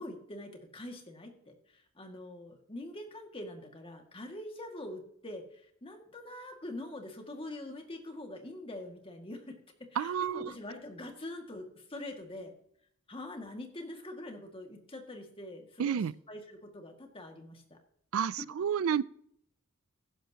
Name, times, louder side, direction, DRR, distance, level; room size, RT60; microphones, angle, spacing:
voice 1, 0.0-12.5 13.1-17.8, left 1 dB, 25° left, 2.1 m, -44 dB
voice 2, 10.0-10.5 15.8-16.1 18.1-19.0, right 8 dB, 85° right, 0.4 m, -30 dB
15.5 x 11.5 x 2.9 m
head